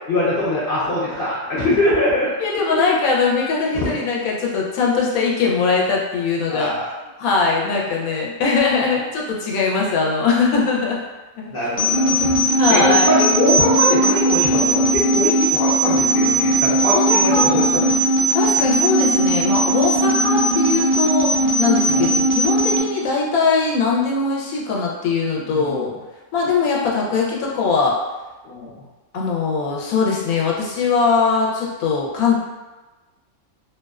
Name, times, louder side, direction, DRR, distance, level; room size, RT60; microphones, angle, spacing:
voice 1, 0.1-2.3 2.6-2.8 3.7-4.0 6.5-6.9 11.5-17.8 21.9-22.1 25.5-25.9 28.4-28.7, left 1 dB, 60° left, -8 dB, 0.6 m, -22 dB
voice 2, 2.4-6.7 7.2-11.0 12.6-13.0 16.9-17.7 18.3-25.9 26.3-28.0 29.1-32.4, left 4 dB, 90° left, -3 dB, 1.0 m, -21 dB
sound 1, 11.8-22.8, right 1 dB, 40° right, 0.4 m, -18 dB
2.5 x 2.1 x 2.3 m, 1.2 s
omnidirectional pair, 1.5 m